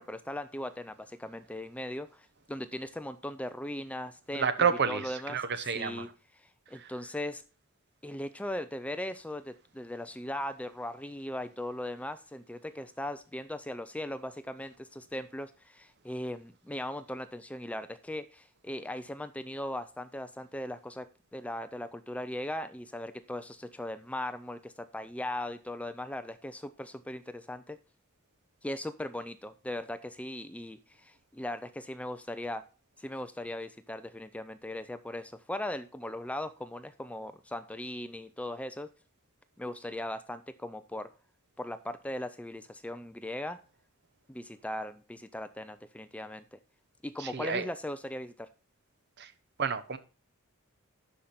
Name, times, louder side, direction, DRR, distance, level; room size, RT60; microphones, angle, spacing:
voice 1, 0.0-6.1 6.3-7.4 8.0-21.1 21.3-27.8 28.6-32.6 33.0-38.9 39.6-41.1 41.6-43.6 44.3-46.6 47.0-48.5, left 1 dB, 5° left, 11 dB, 0.4 m, -39 dB
voice 2, 4.3-6.0 47.2-47.6 49.2-49.3 49.6-50.0, right 6 dB, 50° right, 12 dB, 0.9 m, -29 dB
11.5 x 5.0 x 4.1 m, 0.34 s
head